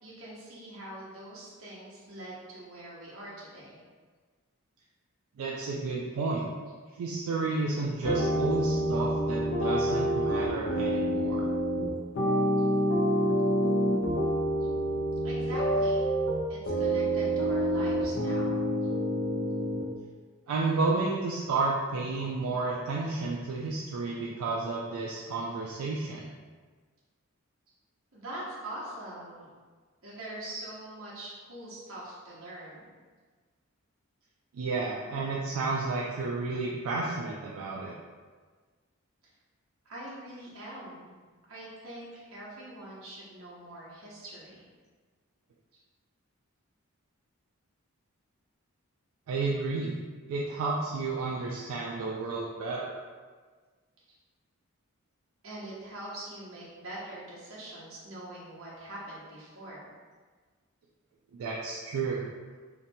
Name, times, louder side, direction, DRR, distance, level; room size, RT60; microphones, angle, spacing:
voice 1, 0.0-3.8 14.6-14.7 15.2-16.1 16.5-18.6 28.1-29.5 30.0-32.9 39.8-41.2 41.5-44.7 55.4-59.9, right 1 dB, 70° right, -7 dB, 0.8 m, -43 dB
voice 2, 5.4-6.5 7.0-11.5 20.5-26.3 34.5-37.9 49.3-50.0 50.3-52.9 61.4-62.2, right 3 dB, 85° right, -3 dB, 0.3 m, -31 dB
sound 1, 8.0-19.8, equal, 50° left, 0.4 m, -27 dB
2.7 x 2.2 x 2.6 m, 1.5 s
head